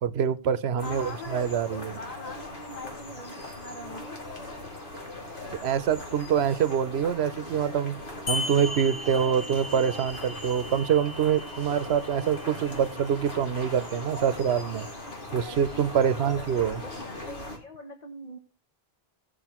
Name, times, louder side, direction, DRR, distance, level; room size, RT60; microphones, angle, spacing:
voice 1, 0.0-2.0 5.6-8.0 8.3-14.9 15.3-16.8, right 8 dB, 85° right, 14 dB, 0.9 m, -25 dB
voice 2, 0.6-4.2 15.9-18.4, left 2 dB, 40° left, 4 dB, 1.4 m, -43 dB
sound 1, 0.8-17.6, left 1 dB, 55° left, 2.6 m, -40 dB
sound 2, 8.3-13.3, left 2 dB, 85° left, 1.7 m, -37 dB
18.0 x 6.5 x 3.0 m, 0.31 s
omnidirectional pair, 1.0 m